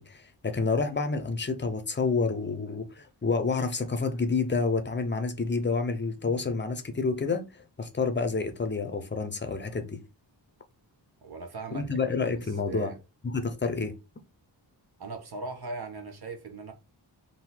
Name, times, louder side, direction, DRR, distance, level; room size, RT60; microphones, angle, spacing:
voice 1, 0.0-10.0 11.7-12.9 13.2-13.9, left 4 dB, 25° left, 0.6 m, -29 dB
voice 2, 11.2-12.0 12.3-13.0 15.0-16.7, right 3 dB, 60° right, 1.1 m, -39 dB
3.8 x 2.7 x 4.2 m
wide cardioid pair, 150°, 44 cm